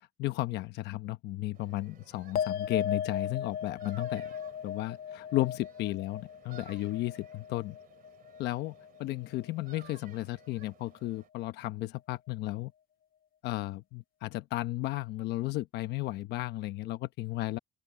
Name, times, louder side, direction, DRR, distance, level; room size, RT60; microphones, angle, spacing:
voice 1, 0.2-4.3 4.6-7.8 8.4-12.7 13.4-17.6, left 17 dB, 85° left, 1.1 m, -34 dB
sound 1, 1.5-11.3, right 10 dB, 60° right, 2.5 m, -58 dB
sound 2, 2.4-9.0 9.3-10.0, left 8 dB, 60° left, 1.1 m, -37 dB
open air
cardioid pair, 110°, 17 cm